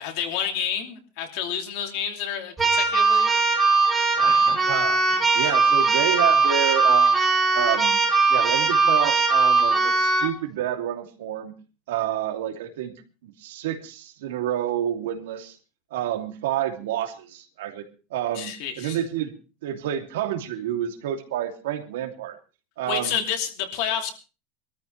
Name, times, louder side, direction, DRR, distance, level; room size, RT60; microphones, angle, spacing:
voice 1, 0.0-3.3 18.3-19.0 22.9-24.1, left 8 dB, 45° left, 5 dB, 2.8 m, -29 dB
Keyboard (musical), 2.6-10.3, right 3 dB, 10° right, 2.6 m, -20 dB
voice 2, 4.2-7.2 7.5-8.0 8.3-11.5 11.9-12.9 13.2-15.6 15.9-17.8 18.1-18.5 18.8-19.3 19.6-22.4 22.8-23.2, right 10 dB, 85° right, 4 dB, 2.8 m, -29 dB
22.5 x 14.0 x 3.3 m, 0.33 s
supercardioid pair, 180°, 0 cm